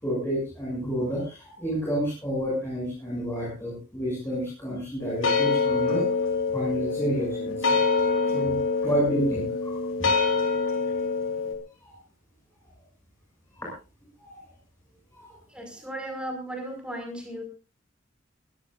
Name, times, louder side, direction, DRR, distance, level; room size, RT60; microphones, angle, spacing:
voice 1, 0.0-6.0 6.5-7.6 8.2-9.9 11.8-11.9 13.6-13.7 14.2-14.5 15.1-15.3, right 1 dB, 10° left, -4 dB, 7.9 m, -30 dB
sound 1, 5.0-11.5, left 4 dB, 85° left, 4.3 m, -25 dB
voice 2, 15.5-17.4, right 1 dB, 5° right, 3 dB, 5.6 m, -36 dB
23.0 x 17.0 x 2.6 m, 0.32 s
head